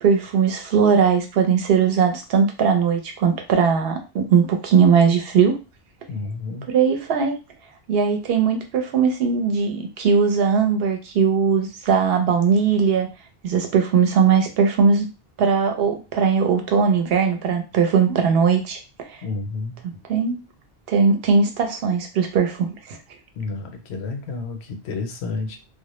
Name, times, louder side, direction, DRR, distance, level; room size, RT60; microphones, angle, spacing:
voice 1, 0.0-5.6 6.7-7.4 7.9-13.1 13.4-15.1 15.4-18.8 19.1-19.2 20.1-20.4 20.9-23.0, right 6 dB, 70° right, 5 dB, 0.8 m, -19 dB
voice 2, 6.1-6.7 19.2-19.8 23.4-25.6, left 3 dB, 80° left, 5 dB, 0.8 m, -30 dB
2.1 x 2.0 x 2.9 m, 0.30 s
omnidirectional pair, 1.1 m